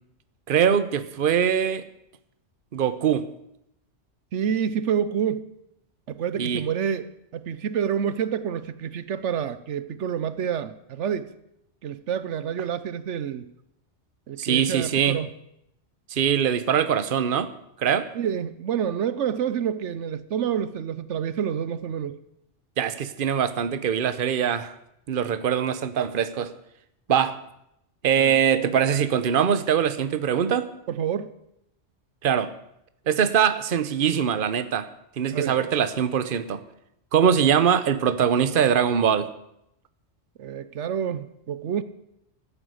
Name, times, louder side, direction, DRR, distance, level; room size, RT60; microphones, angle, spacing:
voice 1, 0.5-1.9 2.7-3.3 6.4-6.7 14.4-15.2 16.1-18.1 22.8-24.8 25.1-26.5 27.1-27.4 28.0-30.7 32.2-32.5 33.0-36.6 37.1-39.3, right 8 dB, 50° right, 1.0 m, -23 dB
voice 2, 4.3-5.5 6.1-7.1 7.3-11.3 11.8-13.5 14.3-15.3 18.2-22.2 28.2-28.3 31.0-31.3 35.3-35.5 40.4-41.8, right 8 dB, 80° right, 1.1 m, -28 dB
14.5 x 9.8 x 7.9 m
omnidirectional pair, 1.2 m